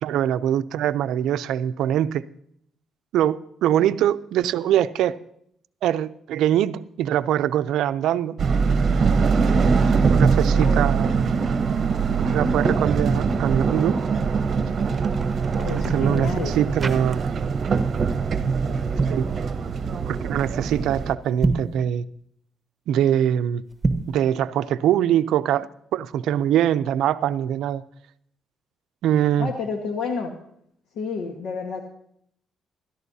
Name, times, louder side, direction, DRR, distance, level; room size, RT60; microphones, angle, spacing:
voice 1, 0.0-2.2 3.1-5.2 5.8-8.4 10.1-11.3 12.3-14.0 15.7-17.3 19.1-19.3 20.1-22.1 22.9-23.6 24.1-27.8 29.0-29.5, right 10 dB, 85° right, 0.4 m, -23 dB
sound 1, 8.4-21.1, right 5 dB, 50° right, 0.8 m, -22 dB
sound 2, 14.6-17.6 17.9-18.2 18.8-19.3 21.3-21.8 23.7-24.2, right 3 dB, 25° right, 1.0 m, -29 dB
voice 2, 15.6-16.6 29.4-30.3 30.9-31.8, left 5 dB, 80° left, 1.4 m, -30 dB
16.0 x 13.5 x 2.8 m
cardioid pair, 90°, 0 cm